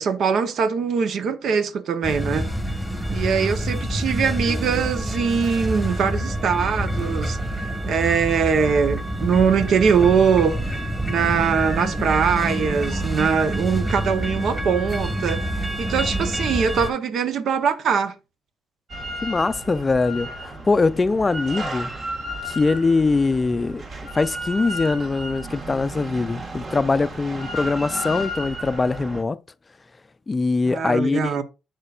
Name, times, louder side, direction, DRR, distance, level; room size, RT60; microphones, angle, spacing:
voice 1, 0.0-2.5 3.1-7.4 7.9-10.8 11.1-15.4 15.8-18.1 30.7-31.4, right 6 dB, 65° right, 0.8 m, -22 dB
sound 1, 2.0-16.9, right 1 dB, 10° right, 1.8 m, -27 dB
Drill, 18.9-29.2, equal, 45° right, 1.6 m, -33 dB
voice 2, 19.2-21.9 22.4-23.8 24.1-29.4 30.3-31.4, left 3 dB, 25° left, 0.4 m, -22 dB
7.9 x 6.4 x 2.4 m
cardioid pair, 90°, 0 cm